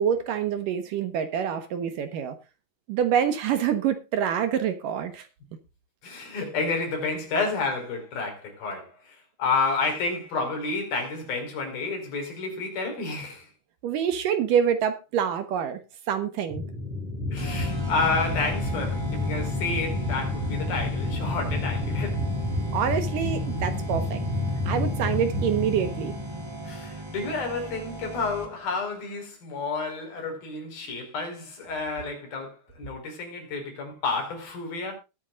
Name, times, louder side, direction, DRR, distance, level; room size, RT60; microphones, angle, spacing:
voice 1, 0.0-2.4 2.9-5.3 13.8-15.8 16.1-16.6 22.7-24.2 24.7-26.2, right 8 dB, 65° right, 2.6 m, -26 dB
voice 2, 6.0-13.5 17.3-22.3 26.6-34.9, left 4 dB, 65° left, 6.5 m, -30 dB
sound 1, 16.5-27.4, left 2 dB, 50° right, 6.5 m, -30 dB
sound 2, 17.4-28.8, right 1 dB, 15° right, 0.9 m, -39 dB
20.5 x 9.1 x 2.4 m
omnidirectional pair, 4.5 m